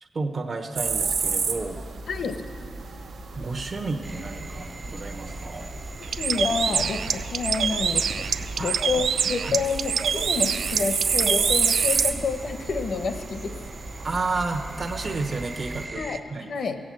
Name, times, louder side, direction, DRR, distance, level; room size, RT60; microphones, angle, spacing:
voice 1, 0.0-1.8 3.3-5.8 8.5-8.8 9.4-9.6 14.0-16.5, right 3 dB, 40° right, 4 dB, 1.0 m, -31 dB
sound 1, 0.8-15.9, right 5 dB, 65° right, 0.8 m, -31 dB
sound 2, 4.0-16.2, right 2 dB, 20° right, 0.5 m, -42 dB
Bird, 6.0-12.1, right 7 dB, 85° right, 0.4 m, -26 dB
voice 2, 6.2-8.2 8.6-13.5 15.9-16.7, left 4 dB, 65° left, 7 dB, 0.8 m, -29 dB
16.0 x 8.8 x 7.6 m, 2.4 s
wide cardioid pair, 160°, 0 cm